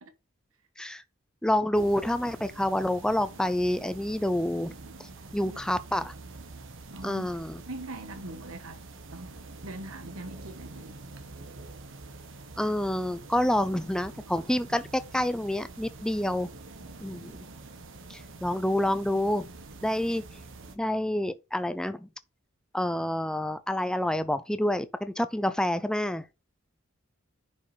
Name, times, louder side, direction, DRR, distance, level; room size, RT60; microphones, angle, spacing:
voice 1, 1.4-4.7 5.0-6.1 7.0-7.6 12.6-16.5 17.0-17.4 18.1-19.5 19.8-20.2 20.8-22.1 22.7-26.3, left 1 dB, 5° left, 0.5 m, -28 dB
sound 1, 1.7-20.8, right 3 dB, 65° right, 1.3 m, -46 dB
voice 2, 5.2-5.6 6.9-8.8 9.1-11.0, right 1 dB, 85° right, 1.3 m, -42 dB
10.0 x 5.4 x 3.4 m
head